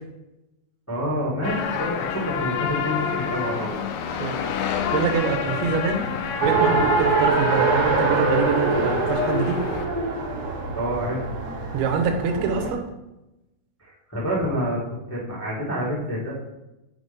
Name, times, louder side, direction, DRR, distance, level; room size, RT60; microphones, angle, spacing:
voice 1, 0.9-1.9 2.2-3.8 10.7-11.2 13.8-14.8 15.1-16.3, equal, 20° left, -8 dB, 0.4 m, -27 dB
sound 1, 1.4-9.9, left 7 dB, 80° left, 2.4 m, -28 dB
voice 2, 4.2-6.0 6.4-9.6 11.7-12.8, right 6 dB, 85° right, 5 dB, 2.7 m, -25 dB
Race car auto racing, 6.4-12.7, right 3 dB, 65° right, 1.6 m, -24 dB
8.3 x 3.9 x 3.6 m, 0.94 s
omnidirectional pair, 4.4 m